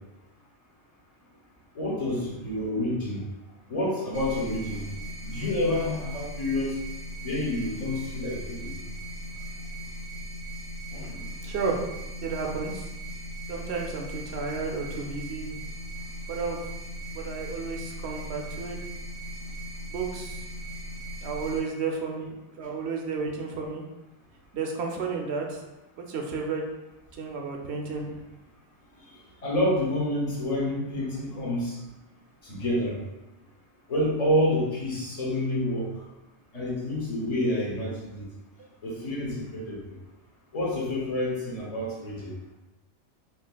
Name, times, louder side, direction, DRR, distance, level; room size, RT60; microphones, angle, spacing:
voice 1, 1.7-3.2 3.7-4.8 5.2-6.7 7.2-8.8 10.9-11.2 29.4-31.8 32.4-33.0 33.9-35.9 36.5-38.2 38.8-39.8 40.5-42.3, left 1 dB, 35° left, -4 dB, 0.9 m, -28 dB
sound 1, 4.1-21.6, right 1 dB, 90° right, 1.1 m, -38 dB
voice 2, 11.4-11.8 12.2-12.9 13.5-15.6 16.3-16.7 17.1-18.8 19.9-20.4 21.2-23.8 24.5-25.6 26.0-26.6 27.1-28.0, right 4 dB, 70° right, 1 dB, 0.8 m, -32 dB
4.3 x 2.7 x 2.2 m, 1.0 s
omnidirectional pair, 1.2 m